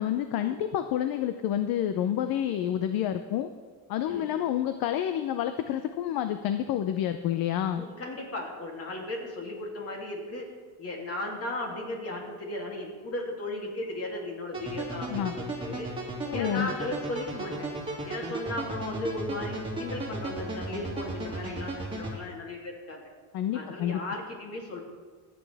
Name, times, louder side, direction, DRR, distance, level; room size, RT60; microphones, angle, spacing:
voice 1, 0.0-3.5 3.9-7.8 15.1-15.3 16.3-16.7 23.3-24.0, left 10 dB, 60° left, 9 dB, 0.7 m, -29 dB
voice 2, 7.7-10.5 10.8-15.9 16.3-17.7 18.0-23.0 23.5-24.8, left 2 dB, 35° left, 0 dB, 2.8 m, -36 dB
sound 1, 14.5-22.2, right 2 dB, 10° right, 2.4 m, -35 dB
25.0 x 8.7 x 3.5 m, 1.5 s
cardioid pair, 150°, 40 cm